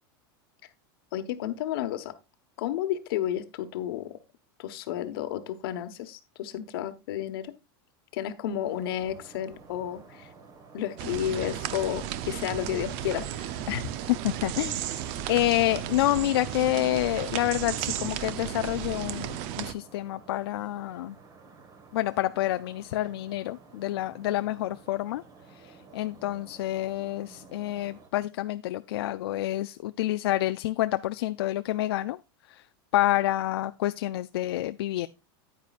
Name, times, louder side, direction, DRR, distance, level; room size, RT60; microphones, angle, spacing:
voice 1, 1.1-2.1 2.6-4.2 4.6-7.5 8.1-10.3 10.7-13.6, left 11 dB, 70° left, 1.2 m, -32 dB
sound 1, 8.6-28.1, right 4 dB, 30° right, 1.6 m, -52 dB
sound 2, 11.0-19.7, right 11 dB, 45° right, 0.7 m, -34 dB
voice 2, 14.1-21.2 21.9-25.2 25.6-32.2 32.5-32.6 32.9-35.1, left 15 dB, 85° left, 0.4 m, -28 dB
9.7 x 9.4 x 2.4 m
supercardioid pair, 155°, 13 cm